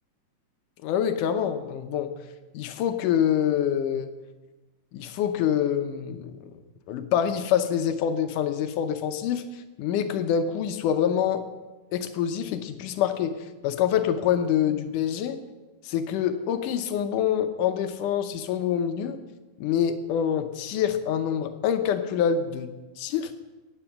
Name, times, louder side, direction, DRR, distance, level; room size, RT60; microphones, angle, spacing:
voice 1, 0.8-2.1 2.5-4.1 4.9-6.5 6.9-11.5 11.9-13.4 13.6-15.4 15.8-19.2 19.6-22.7 23.0-23.3, left 9 dB, 75° left, 9 dB, 2.0 m, -26 dB
16.0 x 10.0 x 5.8 m, 1.2 s
omnidirectional pair, 4.2 m